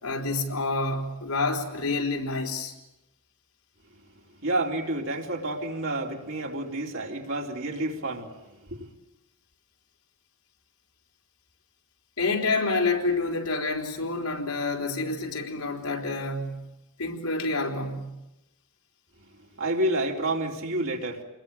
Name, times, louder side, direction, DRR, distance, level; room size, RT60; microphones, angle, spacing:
voice 1, 0.0-2.7 12.2-16.7 17.0-18.2, left 3 dB, 85° left, 4.3 m, -28 dB
voice 2, 4.4-8.3 8.7-8.8 19.6-21.2, right 1 dB, 60° right, 3.7 m, -29 dB
28.5 x 21.5 x 9.0 m
head